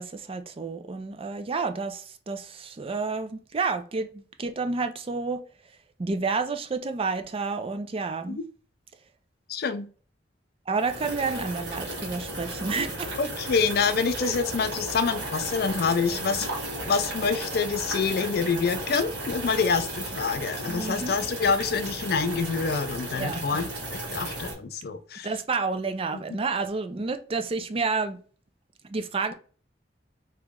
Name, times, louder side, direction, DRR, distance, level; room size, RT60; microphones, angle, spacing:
voice 1, 0.0-5.4 6.0-8.4 10.7-13.1 14.2-14.3 20.7-21.2 23.1-23.4 25.2-28.2 28.8-29.3, right 4 dB, 30° right, 0.4 m, -30 dB
voice 2, 9.5-9.9 13.2-16.5 16.9-25.3 26.1-26.2, left 5 dB, 60° left, 0.4 m, -27 dB
sound 1, 10.7-24.5, right 1 dB, 70° right, 1.7 m, -35 dB
3.1 x 2.9 x 3.6 m
head